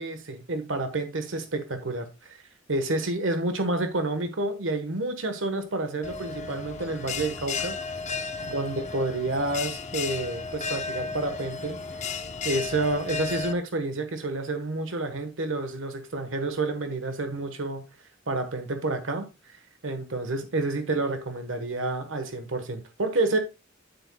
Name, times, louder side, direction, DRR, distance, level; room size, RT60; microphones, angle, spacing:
voice 1, 0.0-2.4 2.7-7.8 8.4-12.2 12.4-17.8 18.3-19.3 19.8-23.4, right 2 dB, 80° right, 1.3 m, -29 dB
Bell, 6.0-13.5, left 5 dB, 35° left, 0.9 m, -34 dB
10.0 x 8.1 x 2.3 m
head